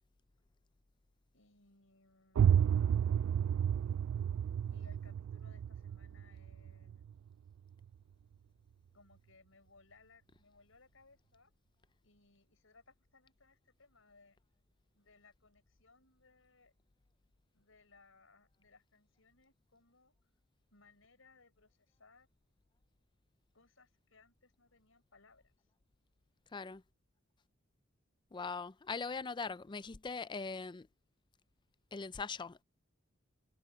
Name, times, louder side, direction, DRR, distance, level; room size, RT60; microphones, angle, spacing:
voice 1, 1.3-2.6 4.7-7.0 8.9-11.5 12.0-14.4 14.9-16.7 17.5-20.1 20.7-22.3 23.5-25.6, left 3 dB, 75° left, 6.5 m, -65 dB
sound 1, 2.4-7.9, right 8 dB, 85° right, 0.3 m, -32 dB
voice 2, 26.5-26.8 28.3-30.9 31.9-32.6, left 4 dB, 25° left, 0.4 m, -41 dB
head